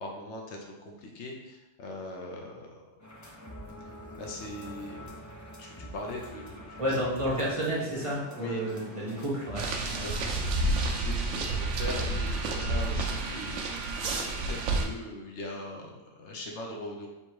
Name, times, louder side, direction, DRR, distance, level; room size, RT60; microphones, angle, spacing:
voice 1, 0.0-2.8 3.8-3.9 4.2-5.1 5.6-7.1 8.3-8.6 9.9-17.1, left 2 dB, 70° left, 0 dB, 1.0 m, -41 dB
sound 1, 3.0-10.4, equal, 25° left, 0.4 m, -45 dB
voice 2, 6.8-9.7 9.9-10.0, equal, 30° right, -7 dB, 0.9 m, -31 dB
sound 2, 9.6-14.9, right 2 dB, 85° right, 0.9 m, -30 dB
3.5 x 2.7 x 4.6 m, 0.99 s
omnidirectional pair, 1.2 m